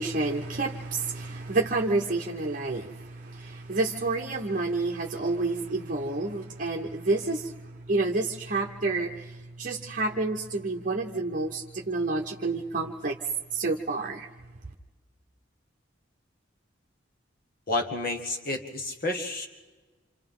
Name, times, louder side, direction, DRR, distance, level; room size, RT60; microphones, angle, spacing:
voice 1, 0.0-7.5 7.9-9.1 9.6-13.2 13.5-14.3, right 3 dB, 45° right, 1 dB, 0.9 m, -29 dB
voice 2, 17.7-19.5, left 2 dB, 50° left, 4 dB, 2.0 m, -30 dB
28.0 x 27.0 x 3.8 m, 1.3 s
head